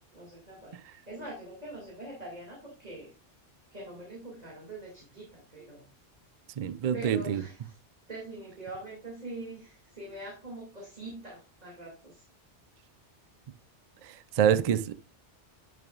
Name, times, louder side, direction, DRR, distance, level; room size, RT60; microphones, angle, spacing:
voice 1, 0.1-3.1 3.7-5.8 6.9-7.8 8.1-12.2, right 2 dB, 35° right, 2.5 m, -43 dB
voice 2, 6.6-7.4 14.0-14.9, right 9 dB, 65° right, 0.3 m, -26 dB
10.5 x 6.9 x 2.4 m
omnidirectional pair, 1.2 m